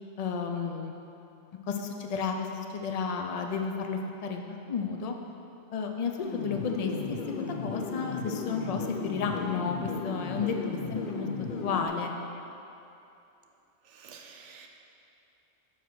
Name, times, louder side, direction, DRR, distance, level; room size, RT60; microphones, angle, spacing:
voice 1, 0.2-0.9 1.7-4.4 4.7-5.1 5.7-6.1 6.4-11.3 11.6-12.1, left 5 dB, 75° left, 3 dB, 0.3 m, -32 dB
sound 1, 6.2-11.9, left 4 dB, 55° left, 0.7 m, -35 dB
voice 2, 13.9-14.7, right 6 dB, 80° right, 3 dB, 1.0 m, -50 dB
7.0 x 5.9 x 4.6 m, 2.8 s
omnidirectional pair, 1.2 m